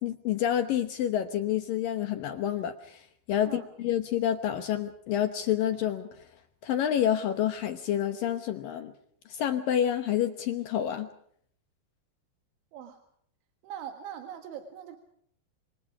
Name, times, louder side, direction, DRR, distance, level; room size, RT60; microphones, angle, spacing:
voice 1, 0.0-6.1 6.6-8.9 9.3-11.1, left 10 dB, 70° left, 9 dB, 2.3 m, -28 dB
voice 2, 13.6-15.0, right 9 dB, 90° right, 7 dB, 4.1 m, -41 dB
27.0 x 26.5 x 4.9 m, 0.66 s
omnidirectional pair, 5.2 m